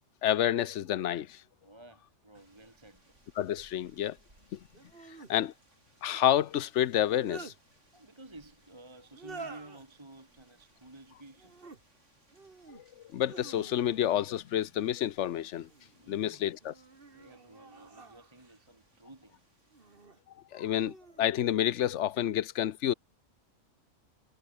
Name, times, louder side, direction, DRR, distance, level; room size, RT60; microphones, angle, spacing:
voice 1, 0.2-1.4 3.4-4.2 4.5-4.6 5.3-5.5 6.0-7.5 12.7-12.8 13.1-15.7 16.1-16.7 20.5-22.9, left 11 dB, 70° left, 1.0 m, -29 dB
voice 2, 1.6-3.1 7.9-11.6 15.9-16.5 17.1-19.4, right 2 dB, 20° right, 1.9 m, -53 dB
sound 1, 2.3-2.4 4.7-5.3 6.9-7.6 9.1-9.9 11.3-11.8 12.3-12.8 13.2-14.1 15.4-16.0 16.6-18.6 19.7-20.2 20.8-21.3, right 4 dB, 45° right, 2.3 m, -49 dB
sound 2, 2.4-20.1, right 1 dB, 70° right, 7.6 m, -67 dB
omnidirectional pair, 1.3 m